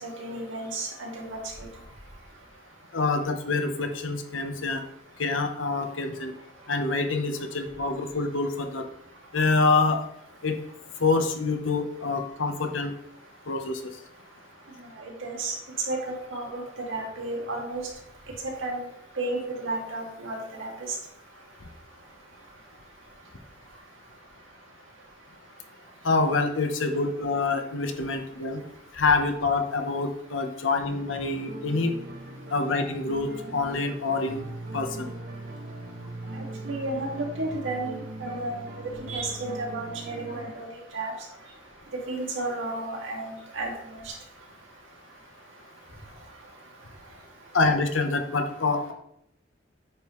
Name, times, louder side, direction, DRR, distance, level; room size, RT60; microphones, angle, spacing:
voice 1, 0.0-1.4 15.0-15.5 15.9-16.0 16.3-16.6 16.9-17.8 18.6-18.8 19.2-20.7 36.4-38.6 39.1-40.7 40.9-41.1 42.1-43.7, right 2 dB, 90° right, -1 dB, 2.1 m, -32 dB
voice 2, 2.9-4.8 5.2-6.3 6.7-8.9 9.3-10.1 10.4-10.6 11.0-12.9 13.5-13.8 26.0-28.6 28.9-31.9 32.5-34.5 34.7-35.1 47.5-48.9, left 3 dB, 85° left, 5 dB, 1.0 m, -26 dB
sound 1, 30.8-40.5, right 2 dB, 55° right, 1.1 m, -40 dB
9.0 x 5.5 x 3.1 m, 0.75 s
head